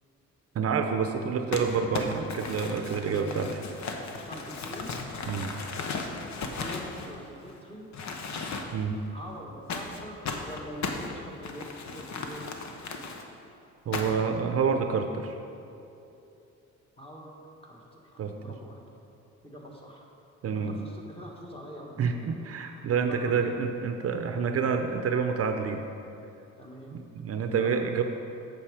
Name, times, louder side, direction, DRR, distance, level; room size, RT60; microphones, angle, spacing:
voice 1, 0.5-3.5 5.3-5.5 8.7-9.0 13.9-15.4 18.2-18.3 20.4-20.8 22.0-25.8 26.9-28.0, right 6 dB, 50° right, 6 dB, 0.6 m, -28 dB
Crumpling crinkling, 1.5-7.5 7.9-8.9 9.7-13.2 13.9-14.3, left 4 dB, 70° left, 1.0 m, -36 dB
voice 2, 3.1-3.5 4.1-4.9 6.6-7.9 9.1-10.2 10.5-12.7 17.0-18.9 19.4-20.0 20.5-22.4 23.1-23.6 26.6-27.0 27.5-28.0, equal, 20° left, -2 dB, 1.7 m, -44 dB
8.8 x 6.7 x 4.9 m, 2.8 s
cardioid pair, 90°, 30 cm